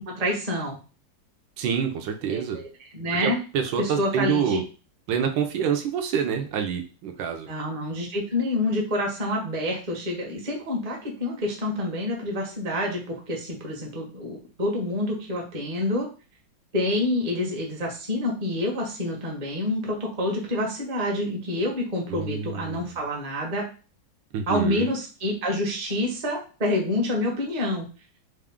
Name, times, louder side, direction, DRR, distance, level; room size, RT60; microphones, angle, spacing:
voice 1, 0.2-0.8 2.3-2.7 2.9-3.4 3.8-4.6 7.5-16.1 16.7-23.7 24.5-27.8, left 1 dB, 35° right, 0 dB, 0.7 m, -27 dB
voice 2, 1.6-2.6 3.2-4.6 5.1-7.5 22.1-22.8 24.3-24.9, right 7 dB, 85° right, 5 dB, 1.4 m, -27 dB
3.5 x 2.5 x 3.5 m, 0.35 s
omnidirectional pair, 2.0 m